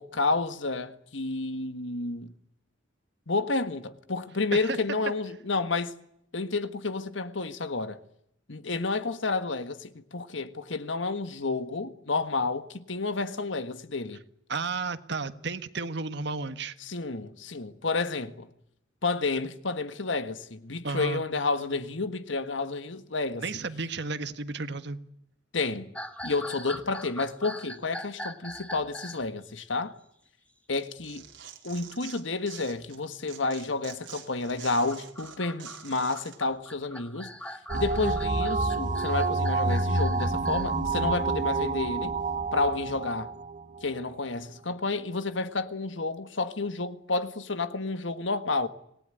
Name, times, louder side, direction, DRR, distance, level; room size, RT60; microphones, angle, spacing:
voice 1, 0.0-2.3 3.3-5.9 6.3-8.0 8.5-14.2 16.8-18.5 19.0-23.5 25.5-25.9 26.2-29.9 30.7-31.2 31.6-37.3 37.7-42.2 42.5-43.3 43.8-48.7, left 3 dB, 80° left, 1.6 m, -30 dB
voice 2, 14.5-16.7 20.8-21.2 23.4-25.0, right 4 dB, 65° right, 1.6 m, -33 dB
sound 1, 25.9-29.3 30.7-31.3 31.7-31.8 32.5-32.8 34.5-40.7, equal, 5° left, 1.8 m, -42 dB
Tearing, 30.7-33.0 33.3-36.4, right 9 dB, 85° right, 4.3 m, -46 dB
sound 2, 37.7-44.1, right 3 dB, 40° right, 1.4 m, -28 dB
26.5 x 19.0 x 10.0 m
head